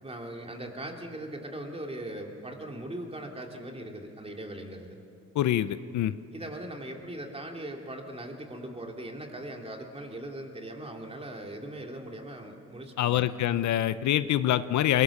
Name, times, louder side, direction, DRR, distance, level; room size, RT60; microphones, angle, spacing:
voice 1, 0.0-5.0 6.3-13.3, right 1 dB, 20° right, 2 dB, 2.9 m, -40 dB
voice 2, 5.3-6.1 13.0-15.0, left 12 dB, 70° left, 14 dB, 0.7 m, -25 dB
22.5 x 18.5 x 7.3 m, 2.4 s
cardioid pair, 90°, 30 cm